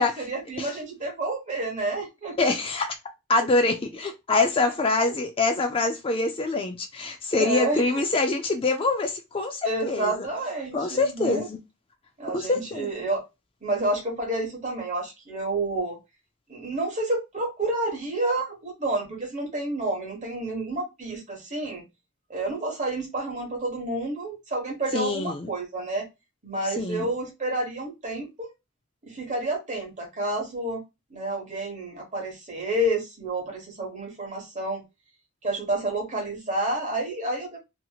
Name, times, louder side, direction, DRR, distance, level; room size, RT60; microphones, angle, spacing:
voice 1, 0.0-2.5 4.9-5.1 7.3-8.0 9.6-11.5 12.2-13.2 13.6-16.0 16.5-21.8 22.3-26.1 26.4-28.5 29.0-30.8 31.1-34.8 35.4-37.6, right 2 dB, 35° right, 1.2 m, -29 dB
voice 2, 2.4-2.9 3.3-10.3 10.7-11.6 12.3-12.9 24.9-25.5 26.8-27.1, left 3 dB, 25° left, 0.4 m, -25 dB
2.9 x 2.8 x 2.3 m
head